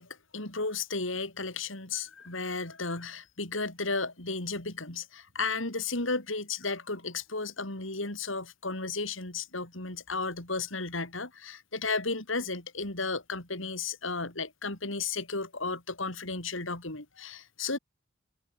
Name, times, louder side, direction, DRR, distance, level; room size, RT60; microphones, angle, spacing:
voice 1, 0.0-17.8, left 3 dB, 80° left, 4.8 m, -34 dB
head